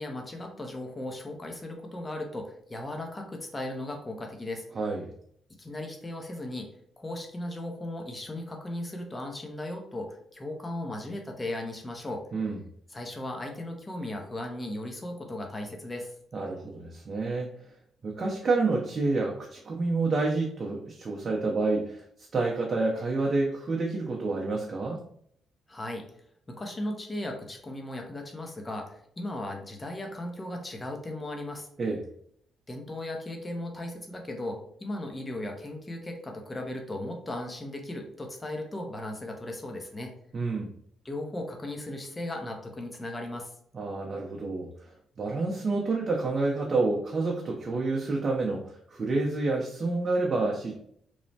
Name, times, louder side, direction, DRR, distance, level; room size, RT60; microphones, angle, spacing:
voice 1, 0.0-4.7 5.6-6.7 7.0-12.2 12.9-16.1 25.7-26.0 26.5-31.7 32.7-40.1 41.0-43.5, left 1 dB, 20° left, 2 dB, 0.6 m, -36 dB
voice 2, 4.7-5.1 12.3-12.6 16.3-17.5 18.0-25.0 31.8-32.0 40.3-40.7 43.7-50.8, right 3 dB, 40° right, -1 dB, 0.5 m, -28 dB
3.0 x 2.0 x 2.7 m, 0.65 s
cardioid pair, 90°, 0 cm